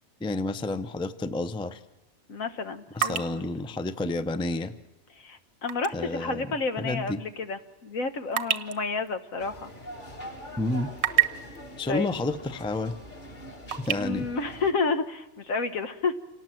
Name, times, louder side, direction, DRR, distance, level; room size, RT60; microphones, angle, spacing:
voice 1, 0.2-1.8 2.9-4.7 5.9-6.5 6.8-7.2 10.6-10.9 11.8-13.0 13.9-14.3, left 2 dB, 5° left, 12 dB, 0.5 m, -30 dB
sound 1, 0.9-1.1 1.6-6.0 6.3-6.5 7.1-10.2 10.6-11.6 12.6-12.7 13.0-14.0, right 11 dB, 85° right, 1.4 m, -31 dB
voice 2, 2.3-3.4 5.1-9.7 11.9-12.1 14.0-16.2, left 4 dB, 75° left, 9 dB, 1.6 m, -30 dB
sound 2, 9.4-14.7, left 1 dB, 35° left, 2.6 m, -43 dB
27.5 x 18.5 x 7.7 m, 1.1 s
omnidirectional pair, 1.4 m